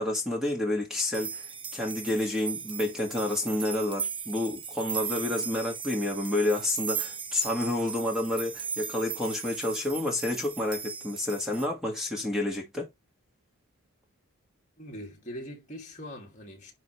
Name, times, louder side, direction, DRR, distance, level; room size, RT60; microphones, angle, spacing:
voice 1, 0.0-1.4 1.7-12.9, left 1 dB, ahead, 1.9 m, -29 dB
sound 1, 1.1-11.7, right 6 dB, 25° right, 0.5 m, -37 dB
voice 2, 14.8-16.7, equal, 35° left, 2.4 m, -42 dB
10.5 x 4.1 x 3.2 m
head